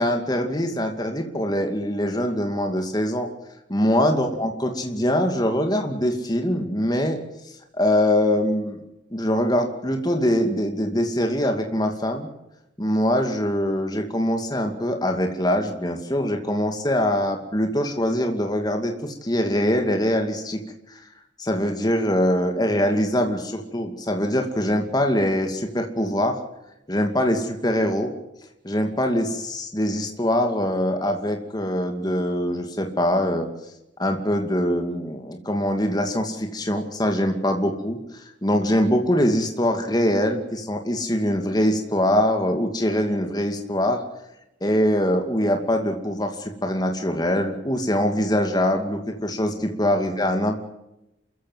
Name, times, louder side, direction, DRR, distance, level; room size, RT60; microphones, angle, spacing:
voice 1, 0.0-3.3 3.7-7.2 7.7-8.8 9.1-12.3 12.8-20.6 20.9-21.0 21.4-26.4 26.9-28.1 28.6-33.5 34.0-38.0 38.4-44.0 44.6-50.6, equal, 20° left, 4 dB, 2.4 m, -23 dB
28.0 x 15.0 x 8.0 m, 0.90 s
head